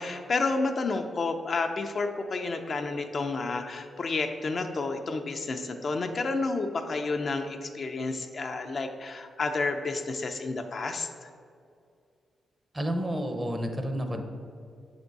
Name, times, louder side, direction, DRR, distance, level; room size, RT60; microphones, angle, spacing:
voice 1, 0.0-11.3, left 3 dB, 50° left, 5 dB, 0.4 m, -30 dB
voice 2, 12.7-14.2, equal, 25° right, 5 dB, 0.7 m, -30 dB
7.1 x 3.5 x 4.0 m, 2.3 s
cardioid pair, 75°, 0 cm